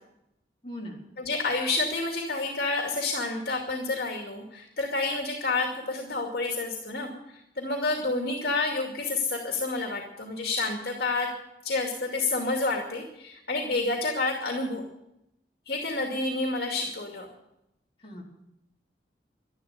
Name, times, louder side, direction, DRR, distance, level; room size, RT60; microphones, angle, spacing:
voice 1, 0.6-1.0 18.0-18.2, equal, 30° left, -4 dB, 4.3 m, -39 dB
voice 2, 1.2-11.3 11.6-14.8 15.7-17.3, left 3 dB, 60° left, 1 dB, 2.4 m, -29 dB
12.5 x 11.5 x 9.4 m, 0.84 s
head